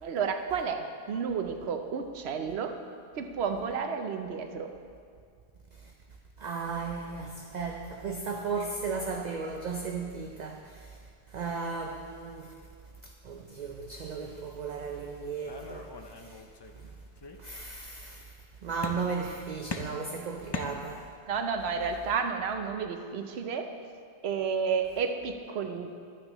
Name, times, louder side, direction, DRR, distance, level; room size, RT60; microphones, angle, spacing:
voice 1, 0.0-2.7 3.1-4.7 21.3-23.7 24.2-25.9, right 6 dB, 70° right, 6 dB, 0.9 m, -31 dB
voice 2, 6.4-10.9 11.3-12.5 13.2-15.9 16.2-16.3 17.4-18.2 18.6-21.0, right 4 dB, 50° right, 2 dB, 0.6 m, -35 dB
sound 1, 15.5-16.8 17.2-17.9 18.8-19.3 19.7-21.3, left 4 dB, 40° left, 0.3 m, -40 dB
11.5 x 8.7 x 3.0 m, 2.2 s
omnidirectional pair, 1.1 m